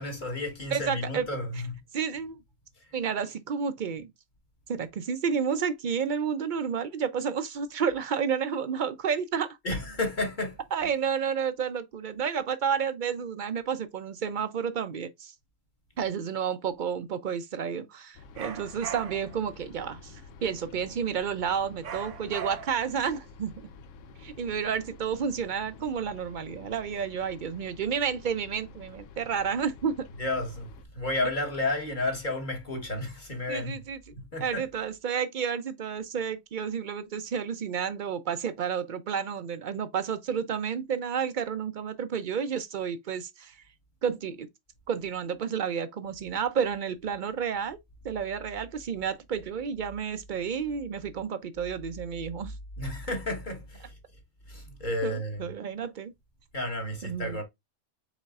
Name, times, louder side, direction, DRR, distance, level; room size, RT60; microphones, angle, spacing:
voice 1, 0.0-1.8 2.8-2.9 9.6-10.6 30.1-33.8 34.1-34.7 52.8-54.0 54.5-55.5 56.5-57.4, left 2 dB, 40° left, 1.4 m, -32 dB
voice 2, 0.7-1.3 1.9-2.4 2.9-4.1 4.7-9.6 10.7-15.3 16.0-23.5 24.2-30.0 33.5-34.0 34.4-43.6 44.0-44.5 44.9-47.8 48.0-52.5 55.0-56.1 57.0-57.4, right 7 dB, 55° right, 0.5 m, -31 dB
sound 1, 18.1-30.8, left 4 dB, 85° left, 1.0 m, -49 dB
sound 2, 18.4-19.4 21.8-22.9, right 7 dB, 75° right, 1.1 m, -39 dB
5.1 x 4.2 x 2.3 m
omnidirectional pair, 1.3 m